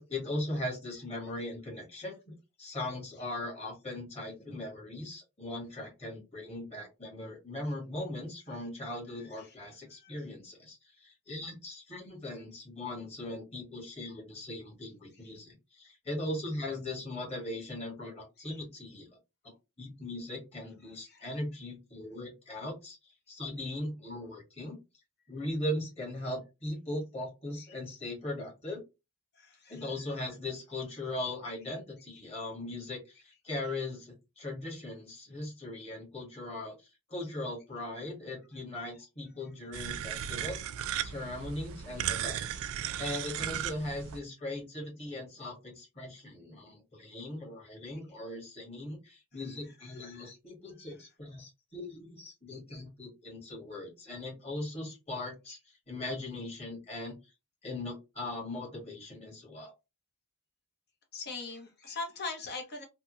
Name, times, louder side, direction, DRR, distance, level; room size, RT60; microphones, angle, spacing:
voice 1, 0.0-19.1 19.8-24.8 25.3-28.8 29.7-36.7 37.1-40.7 41.0-42.6 43.0-57.1 57.6-59.7, left 1 dB, 30° left, -1 dB, 1.6 m, -39 dB
voice 2, 29.4-29.8 50.0-50.3 61.1-62.8, left 3 dB, 50° left, 4 dB, 1.0 m, -41 dB
sound 1, 39.7-44.2, right 10 dB, 65° right, 0.3 m, -36 dB
3.4 x 2.2 x 2.8 m, 0.25 s
head